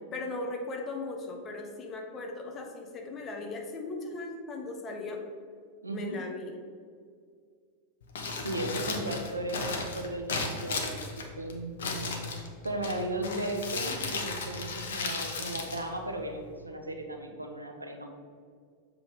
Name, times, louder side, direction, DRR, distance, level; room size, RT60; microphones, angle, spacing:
voice 1, 0.1-5.2 5.9-6.6 8.6-8.7 13.1-13.5, left 3 dB, 25° left, 2 dB, 1.0 m, -38 dB
voice 2, 5.8-6.2 8.4-12.2 12.6-18.1, right 1 dB, 80° right, 4 dB, 0.7 m, -36 dB
Crumpling crinkling, 8.0-16.6, left 3 dB, 60° left, 0.9 m, -36 dB
7.2 x 3.7 x 4.9 m, 2.1 s
figure-of-eight pair, 90°, 0 cm